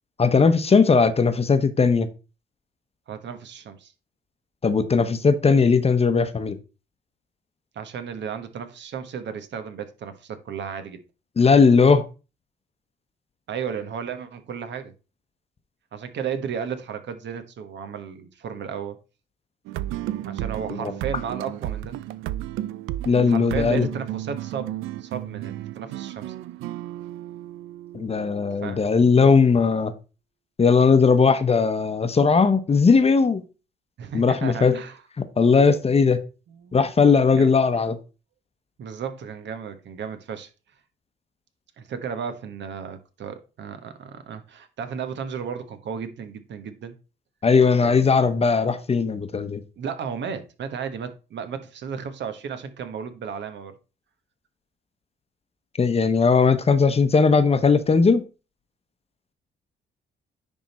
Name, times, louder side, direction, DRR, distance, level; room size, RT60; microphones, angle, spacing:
voice 1, 0.2-2.1 4.6-6.6 11.4-12.1 20.8-20.9 23.1-23.9 27.9-29.9 30.6-33.4 34.1-34.8 35.4-36.2 36.7-38.0 47.4-49.6 55.8-58.2, left 5 dB, 30° left, 0.9 m, -18 dB
voice 2, 3.1-3.9 7.7-11.0 13.5-14.9 15.9-19.0 20.2-22.0 23.3-26.3 28.6-28.8 34.0-35.0 36.5-36.7 37.3-37.5 38.8-40.5 41.8-46.9 47.8-48.0 49.8-53.7, right 7 dB, 65° right, 1.2 m, -34 dB
sound 1, 19.6-29.1, right 14 dB, 90° right, 0.5 m, -33 dB
10.0 x 3.6 x 4.2 m
cardioid pair, 90°, 20 cm